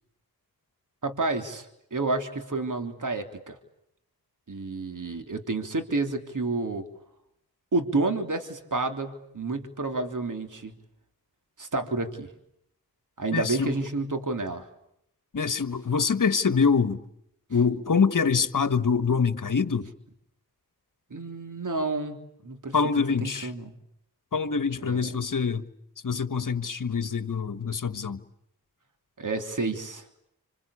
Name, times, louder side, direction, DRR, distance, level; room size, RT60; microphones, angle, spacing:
voice 1, 1.0-3.6 4.5-6.9 7.7-10.7 11.6-12.3 13.2-14.7 21.1-22.2 22.4-22.8 23.2-23.7 24.8-25.1 29.2-30.1, right 3 dB, 55° right, 3.5 m, -30 dB
voice 2, 13.3-13.7 15.3-17.0 17.5-19.9 22.7-23.5 24.3-25.6 26.0-28.2, left 5 dB, 55° left, 1.5 m, -25 dB
26.5 x 26.0 x 8.6 m
cardioid pair, 45°, 38 cm